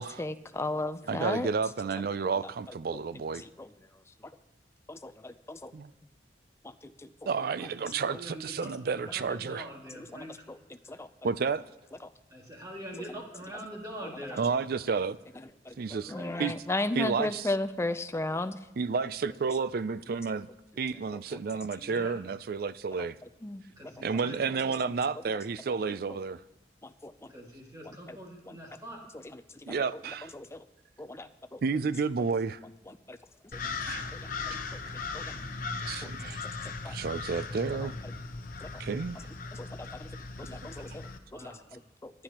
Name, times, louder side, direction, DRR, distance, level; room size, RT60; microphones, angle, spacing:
voice 1, 0.2-1.5 2.2-2.3 2.9-3.0 3.4-3.7 4.9-5.7 6.8-7.3 10.1-10.6 10.9-11.1 15.7-15.8 16.1-18.6 21.1-21.2 23.4-23.6 26.8-27.3 27.8-28.2 28.5-28.6 29.1-29.4 30.3-30.6 31.0-31.2 33.1-33.2 34.1-34.2 35.1-35.2 36.8-37.0 38.6-38.7 39.6-40.1 40.4-41.0 41.3-42.1, left 2 dB, 15° left, 0.5 m, -35 dB
voice 2, 1.1-3.4 5.7-5.9 7.3-9.7 11.2-11.6 14.4-15.2 15.8-16.1 16.4-16.6 16.9-17.5 18.8-20.5 20.8-23.2 24.0-26.4 29.7-30.3 31.6-32.6 33.9-34.1 35.7-36.4 36.9-37.9 38.8-39.3, right 5 dB, 55° right, 0.4 m, -31 dB
voice 3, 7.8-10.3 12.3-14.6 15.9-16.4 21.7-22.2 23.8-25.1 27.3-29.0 41.3-41.8, equal, 20° right, 2.2 m, -44 dB
sound 1, 33.5-41.2, left 4 dB, 50° left, 0.9 m, -38 dB
27.0 x 9.8 x 3.0 m
head